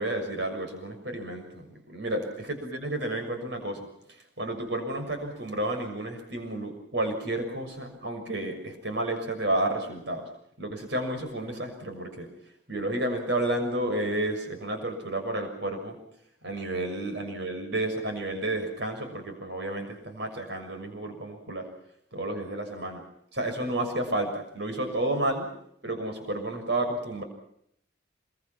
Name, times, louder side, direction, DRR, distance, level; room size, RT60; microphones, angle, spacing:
voice 1, 0.0-10.3 10.6-12.3 12.7-16.0 16.4-21.7 22.1-23.0 23.3-25.5 25.8-27.2, right 1 dB, 60° right, 5 dB, 6.5 m, -31 dB
27.5 x 23.5 x 6.0 m, 0.70 s
head